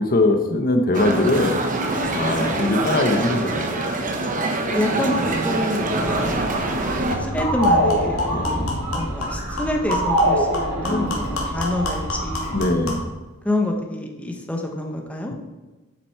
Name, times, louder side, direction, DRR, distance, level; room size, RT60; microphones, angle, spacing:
voice 1, 0.0-1.6 2.1-3.8 8.3-8.7 10.8-11.2 12.5-13.1, left 2 dB, 45° left, 5 dB, 0.9 m, -21 dB
sound 1, 0.9-7.2, right 2 dB, 40° right, 1.1 m, -24 dB
voice 2, 4.7-12.5 13.4-15.3, left 1 dB, 5° left, 1 dB, 1.0 m, -27 dB
sound 2, 6.0-12.7, right 1 dB, 90° right, 3.6 m, -25 dB
sound 3, 6.6-6.7 7.1-13.1, left 1 dB, 90° left, 2.5 m, -29 dB
8.7 x 7.8 x 4.5 m, 1.2 s
head